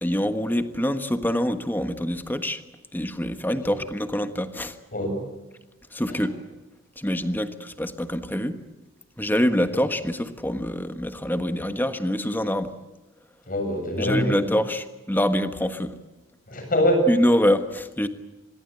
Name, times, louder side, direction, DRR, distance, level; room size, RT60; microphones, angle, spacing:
voice 1, 0.0-2.6 2.9-4.8 5.9-6.4 7.0-8.6 9.2-12.7 14.0-15.9 17.1-18.1, equal, 10° left, 9 dB, 1.4 m, -25 dB
voice 2, 13.5-14.6 16.5-17.1, equal, 45° left, 4 dB, 7.5 m, -24 dB
25.5 x 22.0 x 8.2 m, 1.1 s
head